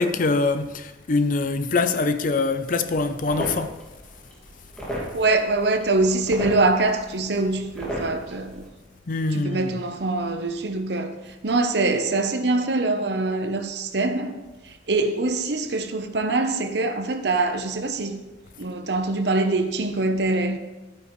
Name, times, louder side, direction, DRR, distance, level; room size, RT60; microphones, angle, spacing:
voice 1, 0.0-3.8 9.1-9.7, left 3 dB, 45° left, 0.5 m, -24 dB
sound 1, 2.7-8.7, equal, 5° left, 2.2 m, -36 dB
voice 2, 5.1-8.7 9.3-11.2 11.4-14.4 14.6-18.3 18.6-20.6, right 2 dB, 65° right, 0.8 m, -24 dB
11.5 x 9.2 x 3.2 m
head